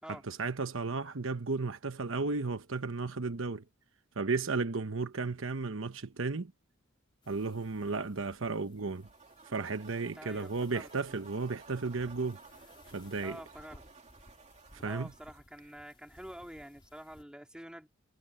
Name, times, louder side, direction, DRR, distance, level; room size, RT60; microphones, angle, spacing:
voice 1, 0.1-3.6 4.2-6.5 7.3-9.1 9.4-12.4 12.9-13.4 14.8-15.1, right 3 dB, 70° right, 1.1 m, -34 dB
sound 1, 7.2-17.2, left 1 dB, 25° left, 3.1 m, -61 dB
sound 2, 8.9-15.4, right 4 dB, 35° right, 2.8 m, -56 dB
voice 2, 10.2-10.9 13.2-13.8 14.9-17.9, equal, 5° right, 3.4 m, -47 dB
head